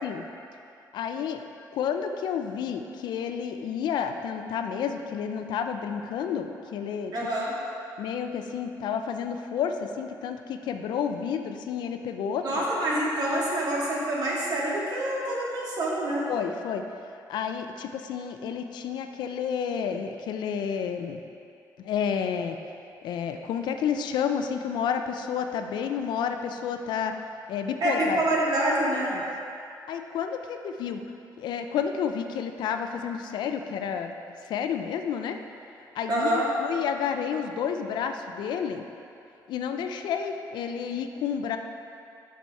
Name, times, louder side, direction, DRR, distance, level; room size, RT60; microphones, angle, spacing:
voice 1, 0.9-1.4 1.7-7.1 8.0-12.6 16.3-16.9 17.3-21.2 21.8-22.6 23.0-27.1 27.5-28.2 29.1-29.2 29.9-31.0 31.4-34.1 34.4-35.4 35.9-38.8 39.5-41.6, left 7 dB, 80° left, 6 dB, 0.5 m, -30 dB
voice 2, 7.1-7.5 12.4-16.3 27.8-29.1 36.1-36.5, right 1 dB, 60° right, -5 dB, 1.9 m, -26 dB
6.9 x 6.1 x 4.6 m, 2.6 s
cardioid pair, 120°, 8 cm